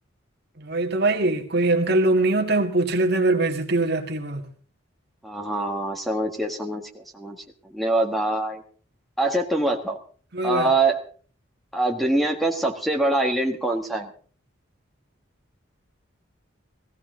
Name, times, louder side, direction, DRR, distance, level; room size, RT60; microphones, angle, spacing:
voice 1, 0.6-4.5 10.3-10.7, right 2 dB, 50° right, 1.9 m, -22 dB
voice 2, 5.2-7.4 7.7-8.6 9.2-10.0 10.4-11.0 11.7-14.1, right 2 dB, ahead, 1.5 m, -24 dB
17.5 x 16.0 x 3.9 m
head